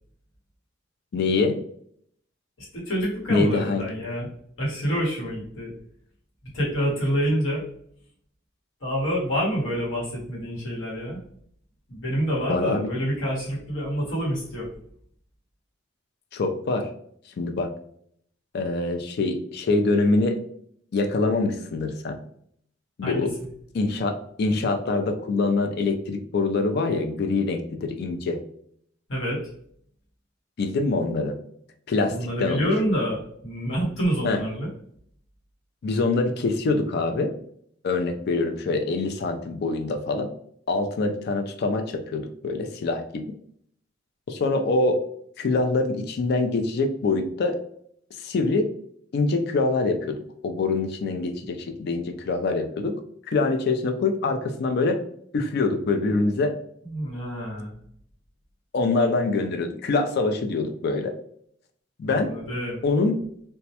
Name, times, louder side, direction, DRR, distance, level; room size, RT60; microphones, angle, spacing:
voice 1, 1.1-1.6 3.3-3.8 12.5-12.9 16.3-16.9 17.4-17.7 18.5-20.4 20.9-22.2 23.0-23.4 23.7-28.4 30.6-31.4 31.9-32.7 34.2-34.4 35.8-37.3 37.8-40.3 40.7-43.3 44.3-45.0 45.4-47.6 48.2-48.7 49.1-50.2 50.4-53.0 53.3-55.0 55.3-56.5 58.7-61.1 62.0-62.3 62.8-63.2, left 3 dB, 55° left, 7 dB, 0.3 m, -24 dB
voice 2, 2.6-4.3 4.6-5.7 6.5-7.6 8.8-11.2 11.9-14.7 23.0-23.3 29.1-29.5 32.1-34.7 56.8-57.8 62.1-62.8, equal, 85° left, -5 dB, 1.1 m, -27 dB
2.2 x 2.1 x 2.7 m, 0.66 s
head